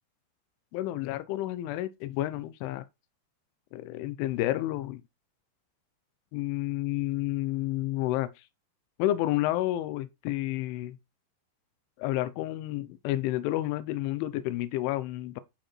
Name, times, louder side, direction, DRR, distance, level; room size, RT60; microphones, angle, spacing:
voice 1, 0.7-2.9 3.7-5.0 6.3-8.3 9.0-11.0 12.0-15.4, left 15 dB, 85° left, 3.2 m, -30 dB
11.5 x 5.1 x 4.4 m
omnidirectional pair, 5.4 m